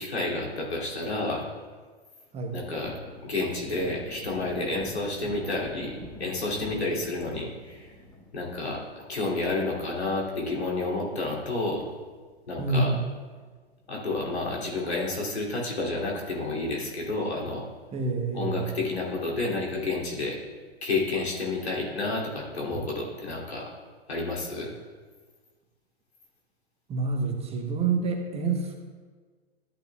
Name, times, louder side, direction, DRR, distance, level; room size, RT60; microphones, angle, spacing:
voice 1, 0.0-1.5 2.5-2.9 3.2-7.9 8.3-11.9 12.5-12.9 13.9-17.7 18.3-20.4 20.8-23.7 24.1-24.7, left 2 dB, 80° left, -3 dB, 2.8 m, -30 dB
Thunder, 2.4-13.2 13.5-13.6 14.0-15.5 15.8-15.9 16.3-17.1 17.5-17.6 17.9-18.0 20.4-20.9, left 1 dB, 10° left, 1.1 m, -47 dB
voice 2, 12.6-13.0 17.9-18.7 26.9-28.7, right 4 dB, 20° right, 3 dB, 1.0 m, -27 dB
13.5 x 9.2 x 2.3 m, 1.5 s
figure-of-eight pair, 110°, 32 cm